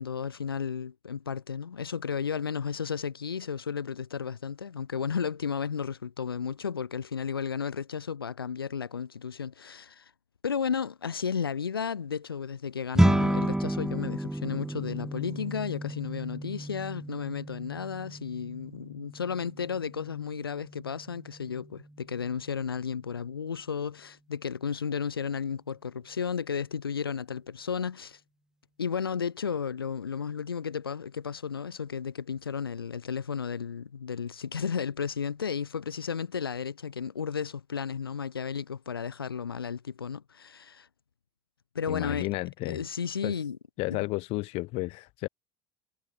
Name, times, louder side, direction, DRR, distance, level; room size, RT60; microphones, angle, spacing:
voice 1, 0.0-10.1 10.4-28.2 28.8-40.9 41.8-42.3 42.7-43.6 43.9-44.0, left 6 dB, 80° left, 1.9 m, -33 dB
sound 1, 12.9-22.4, right 1 dB, 5° right, 7.3 m, -31 dB
voice 2, 41.9-42.8 43.2-43.3 43.8-45.3, left 22 dB, 55° left, 2.4 m, -32 dB
figure-of-eight pair, 70°, 12 cm